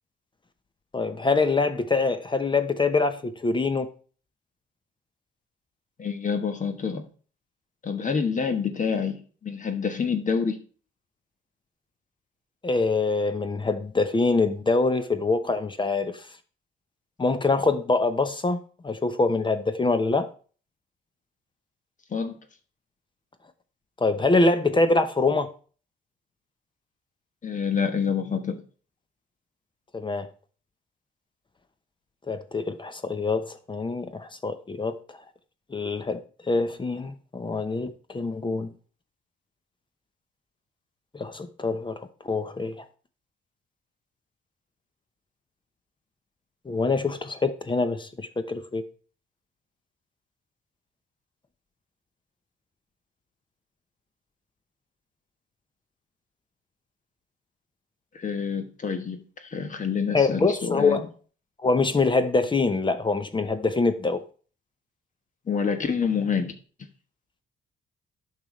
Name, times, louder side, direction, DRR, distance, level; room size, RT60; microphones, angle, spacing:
voice 1, 0.9-3.9 12.6-16.1 17.2-18.6 18.8-20.3 24.0-25.5 29.9-30.3 32.3-34.9 35.7-36.2 36.5-38.7 41.1-42.0 42.2-42.8 46.7-48.8 60.1-61.0 61.6-64.2, left 3 dB, 25° left, 0.8 m, -24 dB
voice 2, 6.0-7.0 7.8-10.6 22.1-22.4 27.4-28.6 58.1-61.0 65.5-66.5, left 6 dB, 40° left, 1.2 m, -27 dB
8.8 x 5.7 x 3.2 m
cardioid pair, 90°, 20 cm